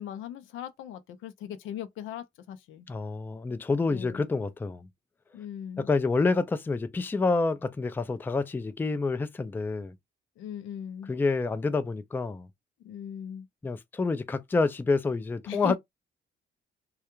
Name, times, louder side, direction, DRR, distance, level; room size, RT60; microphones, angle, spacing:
voice 1, 0.0-2.9 3.9-4.2 5.3-5.9 10.4-11.1 12.8-13.5 15.5-15.8, left 10 dB, 85° left, 0.5 m, -39 dB
voice 2, 2.9-4.9 5.8-9.9 11.1-12.5 13.6-15.8, left 3 dB, 10° left, 0.3 m, -28 dB
2.3 x 2.2 x 2.9 m
cardioid pair, 90°, 20 cm